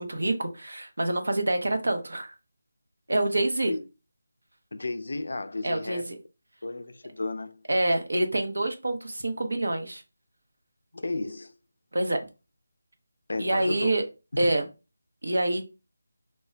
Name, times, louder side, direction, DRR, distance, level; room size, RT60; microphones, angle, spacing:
voice 1, 0.0-2.3 3.1-3.7 5.6-6.2 7.7-10.0 11.9-12.2 13.4-14.0 14.4-14.7 15.2-15.7, right 1 dB, 80° right, 0.7 m, -26 dB
voice 2, 4.7-6.1 6.6-7.6 10.9-11.5 13.3-13.9 14.4-14.5, left 2 dB, 60° left, 0.3 m, -33 dB
2.1 x 2.1 x 3.7 m
figure-of-eight pair, 175°, 0 cm